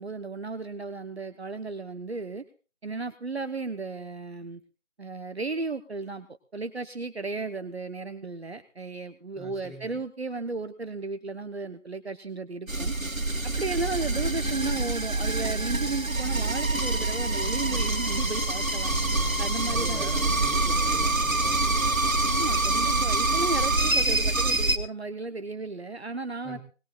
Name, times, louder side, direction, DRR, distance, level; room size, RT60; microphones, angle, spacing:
voice 1, 0.0-2.4 2.8-4.6 5.0-6.3 6.5-12.9 13.4-18.9 19.4-20.1 22.3-26.6, right 3 dB, 50° right, 9 dB, 1.1 m, -34 dB
voice 2, 9.3-10.0 18.9-22.0 26.4-26.6, right 1 dB, 5° right, -11 dB, 6.9 m, -43 dB
sound 1, 12.7-24.8, right 2 dB, 85° right, 2.5 m, -26 dB
20.5 x 20.5 x 2.5 m, 0.34 s
figure-of-eight pair, 165°, 40 cm